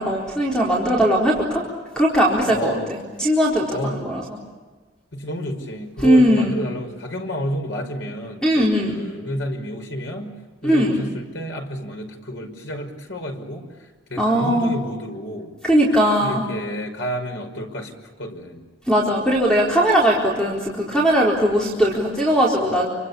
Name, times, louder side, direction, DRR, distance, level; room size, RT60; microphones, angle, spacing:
voice 1, 0.0-1.6 2.0-4.2 6.0-6.5 8.4-8.9 10.6-11.0 14.2-14.7 15.6-16.4 18.9-22.9, equal, 5° left, -4 dB, 4.3 m, -19 dB
voice 2, 2.5-2.9 3.7-4.0 5.1-10.3 10.6-13.7 14.1-15.5 16.2-17.9 18.2-18.7, equal, 80° left, 3 dB, 5.7 m, -30 dB
28.5 x 25.5 x 7.2 m, 1.3 s
head